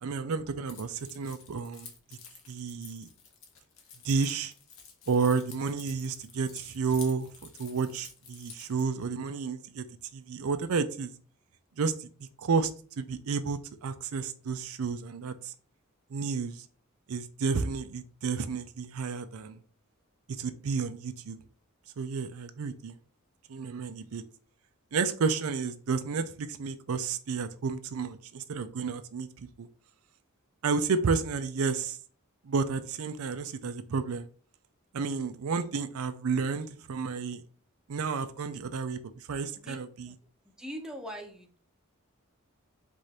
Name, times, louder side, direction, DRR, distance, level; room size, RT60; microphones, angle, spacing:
voice 1, 0.0-1.9 2.5-3.1 4.0-4.5 5.1-9.8 10.1-11.1 11.8-12.1 12.4-12.7 13.0-15.5 16.1-16.7 17.1-19.6 20.4-21.4 22.0-23.0 23.5-24.2 24.9-29.7 30.6-32.0 32.4-34.3 34.9-37.4 37.9-39.0 39.3-40.1, right 5 dB, 80° right, 10 dB, 0.5 m, -31 dB
Keys jangling, 0.7-8.8, left 6 dB, 65° left, 1.0 m, -50 dB
voice 2, 40.5-41.6, equal, 5° right, 1 dB, 0.7 m, -41 dB
4.8 x 2.5 x 4.2 m, 0.42 s
head